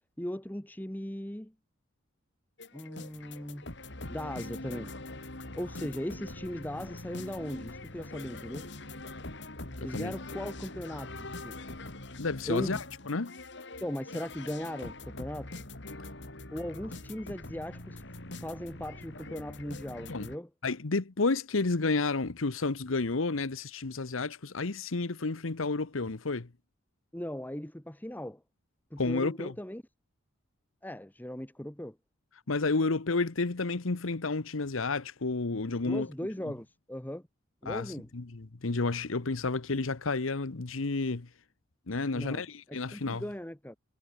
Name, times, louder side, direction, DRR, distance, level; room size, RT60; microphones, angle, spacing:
voice 1, 0.2-1.5 2.7-3.7 4.1-4.9 5.6-8.7 9.8-11.6 12.4-12.8 13.8-15.5 16.5-18.0 18.4-20.5 27.1-28.4 28.9-29.8 30.8-32.0 35.8-37.2 37.6-38.1 42.1-42.4 42.9-43.8, equal, 10° left, 1.2 m, -38 dB
sound 1, 2.6-20.4, left 2 dB, 60° left, 3.3 m, -43 dB
voice 2, 12.2-13.4 20.1-20.3 20.6-26.5 29.0-29.5 32.5-36.1 37.7-41.3 41.9-43.2, left 3 dB, 85° left, 1.0 m, -31 dB
head